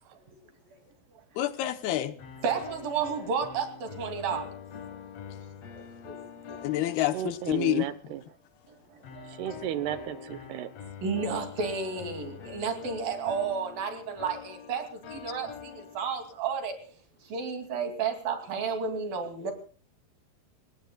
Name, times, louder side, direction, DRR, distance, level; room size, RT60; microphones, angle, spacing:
voice 1, 1.4-2.2 6.6-7.9, left 14 dB, 75° left, 2.8 m, -28 dB
sound 1, 2.2-8.0 9.0-16.4, left 7 dB, 55° left, 2.0 m, -45 dB
voice 2, 2.4-4.5 5.7-6.2 6.5-6.8 8.7-9.6 11.0-19.5, right 5 dB, 60° right, 4.2 m, -32 dB
voice 3, 7.0-8.2 9.3-10.7, right 11 dB, 80° right, 2.9 m, -34 dB
29.5 x 17.5 x 2.3 m
omnidirectional pair, 4.7 m